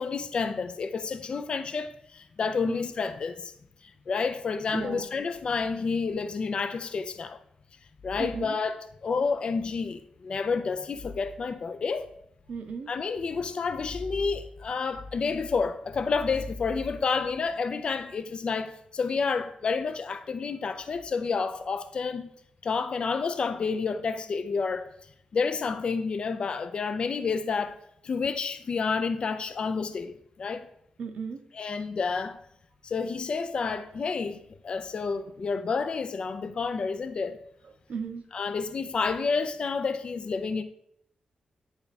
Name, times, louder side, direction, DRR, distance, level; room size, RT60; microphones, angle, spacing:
voice 1, 0.0-3.5 3.8-7.4 8.0-12.1 12.9-22.3 22.6-24.9 25.3-27.8 28.0-30.7 31.5-32.4 32.8-37.4 38.3-40.6, left 5 dB, 45° left, 0.4 m, -30 dB
voice 2, 4.7-5.1 8.2-8.5 12.5-12.9 31.0-31.4 37.9-38.2, right 5 dB, 65° right, 0.7 m, -35 dB
9.1 x 3.5 x 4.0 m
wide cardioid pair, 140°, 2 cm